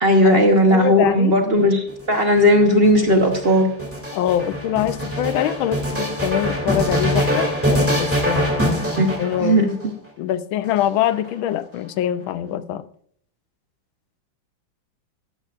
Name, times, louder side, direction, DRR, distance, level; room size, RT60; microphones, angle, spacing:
voice 1, 0.0-3.7 9.0-9.1 9.4-9.7, equal, 40° right, 1.0 m, -16 dB
voice 2, 0.7-1.4 4.1-8.5 9.2-9.7 10.2-12.9, left 11 dB, 90° left, 1.5 m, -24 dB
sound 1, 1.9-9.8 10.6-11.5, equal, 5° right, 2.4 m, -23 dB
13.0 x 12.5 x 2.5 m
omnidirectional pair, 2.1 m